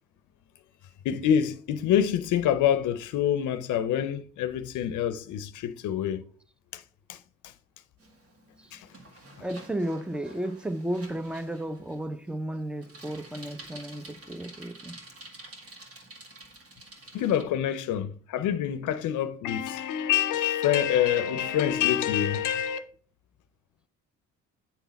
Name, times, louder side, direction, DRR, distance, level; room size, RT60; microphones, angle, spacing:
voice 1, 1.0-6.2 6.7-6.8 7.1-7.2 8.7-9.0 17.1-22.9, left 10 dB, 80° left, 0.6 m, -26 dB
Bicycle, 8.0-17.4, right 1 dB, 50° right, 1.9 m, -49 dB
voice 2, 9.4-14.9, right 1 dB, 5° right, 0.6 m, -33 dB
9.1 x 3.9 x 4.0 m
cardioid pair, 90°, 30 cm